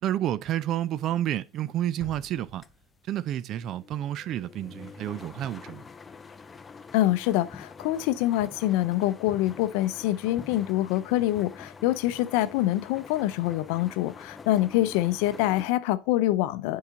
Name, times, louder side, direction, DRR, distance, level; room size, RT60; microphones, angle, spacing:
voice 1, 0.0-2.6 3.1-5.8, right 12 dB, 50° right, 0.4 m, -30 dB
sound 1, 0.8-15.7, left 5 dB, 25° left, 0.5 m, -46 dB
sound 2, 2.0-3.9 4.3-4.4, left 1 dB, 5° right, 1.7 m, -52 dB
voice 2, 6.9-16.8, left 15 dB, 75° left, 0.5 m, -25 dB
7.2 x 4.8 x 3.8 m
supercardioid pair, 100°, 0 cm